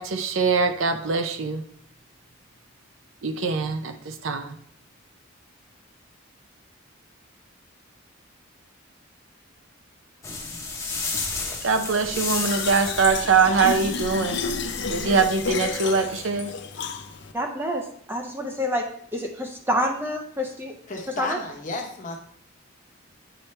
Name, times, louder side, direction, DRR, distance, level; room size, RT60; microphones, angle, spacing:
voice 1, 0.0-1.6 3.2-4.6 11.6-14.4 14.9-16.5, right 5 dB, 70° right, 7 dB, 0.6 m, -23 dB
sound 1, 10.2-15.9, left 3 dB, 15° left, 0.9 m, -33 dB
Fill (with liquid), 12.3-17.3, left 5 dB, 55° left, 0.6 m, -31 dB
voice 2, 17.3-20.8 21.1-21.4, equal, 10° right, 3 dB, 0.5 m, -28 dB
voice 3, 20.9-22.2, left 3 dB, 40° left, 1 dB, 1.0 m, -32 dB
8.9 x 4.3 x 3.3 m, 0.64 s
head